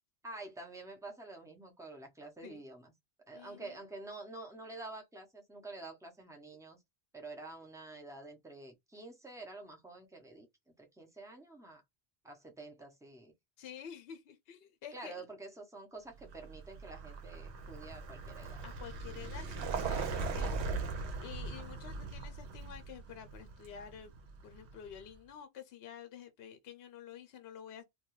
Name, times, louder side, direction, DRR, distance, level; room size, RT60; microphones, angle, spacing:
voice 1, 0.2-2.9 3.3-6.8 7.1-10.5 10.8-11.8 12.2-13.3 14.9-18.6 20.6-21.0, right 2 dB, 5° right, 0.4 m, -48 dB
voice 2, 3.3-3.8 13.6-15.2 18.6-20.8 21.2-24.1 24.4-27.8, left 8 dB, 70° left, 0.8 m, -50 dB
Vehicle, 16.2-25.0, right 4 dB, 85° right, 0.9 m, -40 dB
2.3 x 2.3 x 3.0 m
omnidirectional pair, 1.1 m